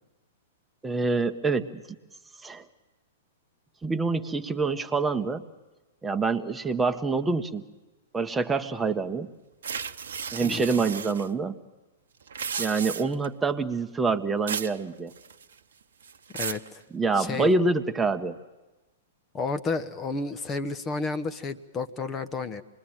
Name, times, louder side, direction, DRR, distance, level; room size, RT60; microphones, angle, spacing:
voice 1, 0.8-1.8 2.4-2.6 3.8-5.4 6.0-7.6 8.1-9.3 10.3-11.6 12.6-15.1 16.9-18.4, right 4 dB, 10° right, 7 dB, 1.2 m, -26 dB
sound 1, 9.6-11.3 12.2-13.3 14.5-14.8 15.1-15.6 16.0-16.7, right 6 dB, 70° right, 0.9 m, -34 dB
voice 2, 16.3-16.8 17.1-17.5 19.3-22.6, left 3 dB, 20° left, 9 dB, 1.2 m, -31 dB
28.0 x 21.5 x 9.1 m, 1.1 s
figure-of-eight pair, 110°, 0 cm